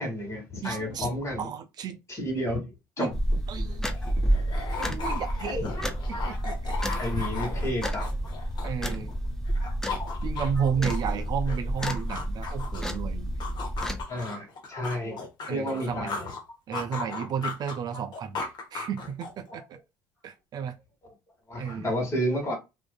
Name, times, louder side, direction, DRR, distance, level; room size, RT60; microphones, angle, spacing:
voice 1, 0.0-1.5 2.1-2.6 3.0-3.1 4.8-4.9 5.5-6.3 6.9-8.1 8.8-9.0 9.6-9.7 10.0-10.1 14.1-15.2 15.5-16.3 17.9-18.0 21.5-22.5, equal, 35° left, 1.5 m, -31 dB
voice 2, 0.6-1.1 1.4-2.0 3.0-3.1 3.5-4.0 4.8-5.7 6.1-6.7 8.6-9.1 10.2-13.6 15.5-16.1 16.7-18.4 18.7-19.8 20.2-20.8 21.6-21.9, right 7 dB, 50° right, 0.4 m, -33 dB
sound 1, 3.1-14.0, right 1 dB, 5° left, 0.5 m, -30 dB
sound 2, 3.3-3.4 3.7-9.2 9.5-13.0 13.4-16.4 16.7-19.5, left 4 dB, 55° left, 0.9 m, -37 dB
2.5 x 2.4 x 2.2 m
hypercardioid pair, 70°, 9 cm